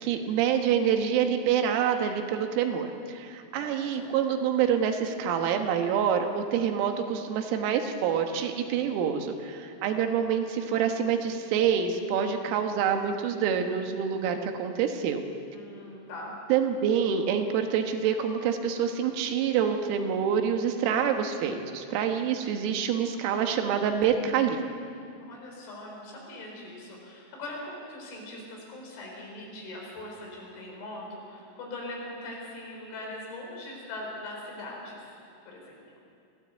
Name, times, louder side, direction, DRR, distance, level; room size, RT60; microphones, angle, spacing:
voice 1, 0.0-15.2 16.5-24.6, right 8 dB, 85° right, 5 dB, 4.0 m, -26 dB
voice 2, 3.6-4.1 15.5-16.4 25.2-35.1 35.5-35.8, left 1 dB, 65° left, -2 dB, 6.8 m, -41 dB
22.0 x 15.5 x 8.2 m, 2.5 s
omnidirectional pair, 6.0 m